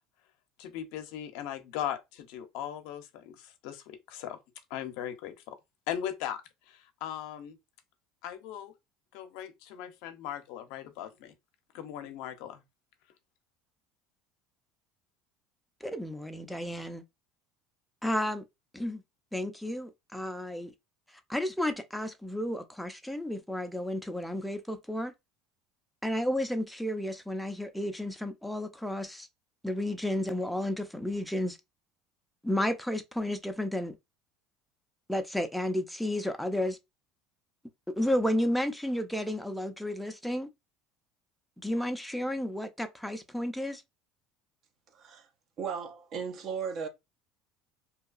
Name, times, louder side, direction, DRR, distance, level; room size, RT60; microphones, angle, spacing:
voice 1, 0.6-4.4 4.7-5.6 5.9-7.6 8.2-8.7 9.1-11.3 11.7-12.6, left 10 dB, 75° left, 0.5 m, -38 dB
voice 2, 15.8-17.0 18.0-18.4 18.7-19.0 19.3-20.7 21.3-25.1 26.0-29.3 29.6-31.6 32.4-33.9 35.1-36.8 37.9-40.5 41.6-43.8, left 1 dB, ahead, 0.4 m, -32 dB
voice 3, 44.9-45.3 45.6-46.9, right 6 dB, 45° right, 0.6 m, -36 dB
2.7 x 2.3 x 2.4 m
supercardioid pair, 120°, 0 cm